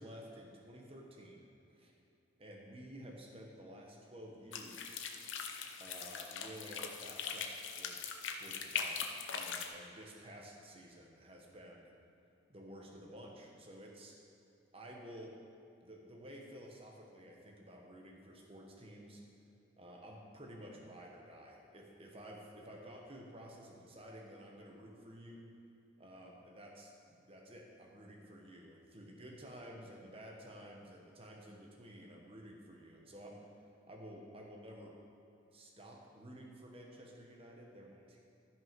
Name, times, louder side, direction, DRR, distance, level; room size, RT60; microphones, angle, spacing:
voice 1, 0.0-1.4 1.7-2.0 2.4-5.0 5.8-7.5 7.8-9.0 9.3-11.9 12.5-14.1 14.7-15.3 15.8-19.2 19.8-25.5 26.0-33.4 33.9-35.0 35.5-38.2, equal, 30° right, -1 dB, 1.2 m, -52 dB
sound 1, 4.5-9.7, left 6 dB, 80° left, 0.8 m, -41 dB
12.5 x 6.2 x 5.3 m, 2.7 s
head